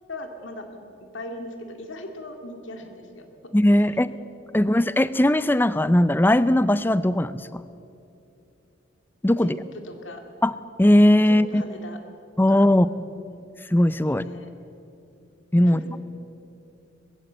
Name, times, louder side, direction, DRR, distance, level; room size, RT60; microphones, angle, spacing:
voice 1, 0.1-0.7 1.1-3.3 4.5-4.9 9.4-9.5 9.9-10.2 11.3-12.0 12.5-12.6 13.0-13.5 14.2-14.5 15.6-16.0, left 1 dB, 75° left, 5 dB, 2.2 m, -39 dB
voice 2, 3.5-4.1 4.5-7.6 9.2-9.6 10.4-11.6 12.4-12.9 13.7-14.3 15.5-16.0, left 1 dB, 10° left, 15 dB, 0.4 m, -19 dB
21.0 x 16.0 x 7.9 m, 2.7 s
head